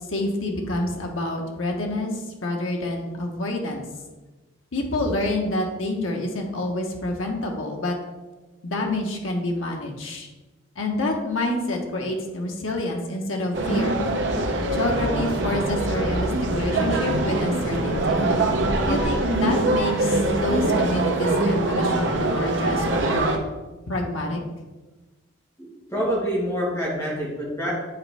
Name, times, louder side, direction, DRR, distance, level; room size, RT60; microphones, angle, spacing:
voice 1, 0.1-3.9 4.7-7.9 8.6-10.3 10.8-14.0 14.7-18.2 18.9-23.3 23.9-24.4, left 1 dB, 85° left, 1 dB, 1.1 m, -27 dB
sound 1, 13.5-23.4, right 2 dB, 65° right, 0.8 m, -23 dB
voice 2, 25.6-27.7, equal, 15° left, -5 dB, 1.7 m, -26 dB
8.7 x 4.1 x 3.5 m, 1.2 s
head